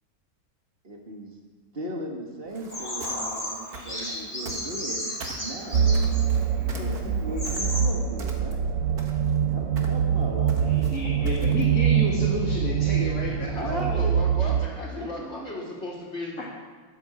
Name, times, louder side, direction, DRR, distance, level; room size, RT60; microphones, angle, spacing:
voice 1, 0.8-1.4 1.7-6.0 6.7-8.7 9.5-11.3 13.6-14.6 15.0-15.8, right 1 dB, 40° right, 1 dB, 2.2 m, -37 dB
sound 1, 2.5-5.0 5.2-7.9 8.2-8.7 9.0-11.7, right 3 dB, 85° right, 2.1 m, -42 dB
Bird vocalization bird call bird song, 2.7-6.3 6.9-7.0 7.3-7.8, left 1 dB, 25° left, 3.8 m, -33 dB
sound 2, 5.7-14.7, right 8 dB, 65° right, 1.0 m, -24 dB
voice 2, 10.4-13.4 13.7-13.8 15.0-15.1, left 1 dB, 65° left, -4 dB, 2.5 m, -31 dB
voice 3, 13.5-16.5, left 2 dB, 45° left, -4 dB, 3.5 m, -35 dB
13.0 x 9.5 x 7.3 m, 1.5 s
omnidirectional pair, 1.6 m